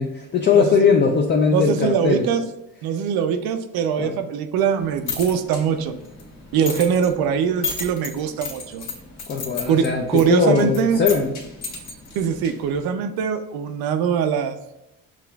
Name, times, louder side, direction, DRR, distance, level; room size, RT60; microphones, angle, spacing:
voice 1, 0.0-2.3 4.0-4.2 9.3-11.4, left 5 dB, 30° left, 0 dB, 0.4 m, -20 dB
voice 2, 0.5-0.8 1.5-2.4 2.8-5.9 6.5-8.8 9.7-11.0 12.1-14.6, right 7 dB, 80° right, 10 dB, 0.5 m, -22 dB
sound 1, 4.8-12.8, left 5 dB, 50° left, 1.5 m, -34 dB
7.2 x 2.4 x 2.2 m, 0.92 s
cardioid pair, 135°, 36 cm